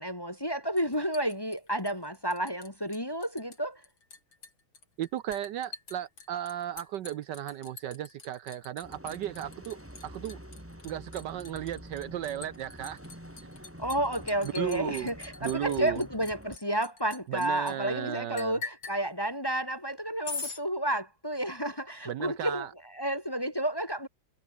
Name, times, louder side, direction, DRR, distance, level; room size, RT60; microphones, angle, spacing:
voice 1, 0.0-3.8 13.8-22.7 22.9-24.1, right 1 dB, 15° left, 1.3 m, -31 dB
Liquid, 0.8-2.7 2.9-3.6 3.8-17.7 18.4-19.0 20.2-20.6, left 4 dB, 85° left, 4.8 m, -43 dB
voice 2, 5.0-9.8 10.0-10.4 10.8-13.0 13.4-13.5 14.4-15.1 15.4-16.0 17.3-18.6 22.1-22.7, right 11 dB, 70° right, 1.2 m, -35 dB
sound 1, 8.8-16.6, equal, 5° right, 6.4 m, -47 dB
omnidirectional pair, 2.1 m